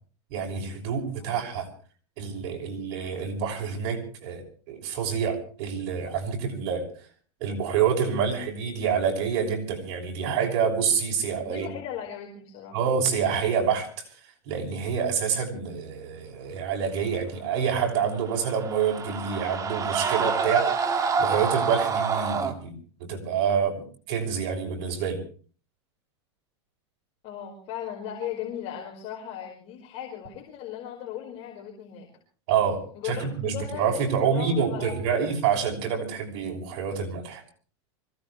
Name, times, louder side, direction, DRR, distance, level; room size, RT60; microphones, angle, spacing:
voice 1, 0.3-1.7 2.2-6.9 7.4-11.7 12.7-14.0 14.4-22.7 23.0-25.2 32.5-37.4, right 6 dB, 60° right, 1 dB, 6.0 m, -27 dB
voice 2, 11.4-12.8 27.2-32.1 32.9-35.3, left 9 dB, 50° left, 0 dB, 4.8 m, -37 dB
sound 1, 18.1-22.5, right 5 dB, 25° right, 1.8 m, -27 dB
25.0 x 17.5 x 3.3 m, 0.42 s
supercardioid pair, 135°, 14 cm